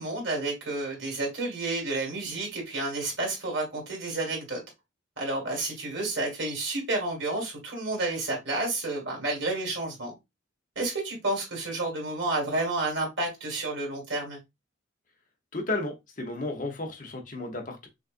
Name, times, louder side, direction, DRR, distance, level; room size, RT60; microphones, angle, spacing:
voice 1, 0.0-4.6 5.2-10.1 10.8-14.4, right 2 dB, 75° right, 2.2 m, -30 dB
voice 2, 15.5-17.9, left 2 dB, 40° left, 0.9 m, -33 dB
6.1 x 2.5 x 2.5 m
head